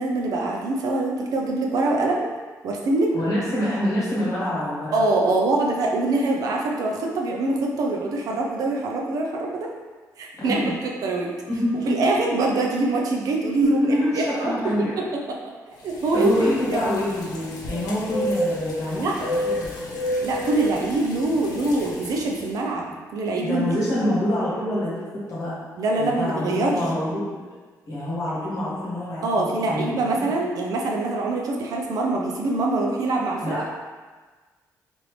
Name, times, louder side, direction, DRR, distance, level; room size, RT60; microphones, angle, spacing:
voice 1, 0.0-2.3 2.6-3.1 4.9-9.7 10.2-11.4 11.9-15.1 15.8-16.3 16.7-16.9 19.0-19.1 20.2-23.8 25.8-26.8 29.2-33.6, right 2 dB, 65° right, 0 dB, 0.5 m, -24 dB
voice 2, 3.1-5.0 10.4-10.8 11.5-12.1 13.6-15.1 16.1-20.0 23.4-25.6 26.0-27.3 27.9-30.3 33.4-33.7, left 1 dB, 50° left, -7 dB, 1.0 m, -26 dB
sound 1, 15.9-22.5, equal, 80° left, 0.6 m, -30 dB
3.3 x 2.5 x 3.1 m, 1.4 s
cardioid pair, 125°, 7 cm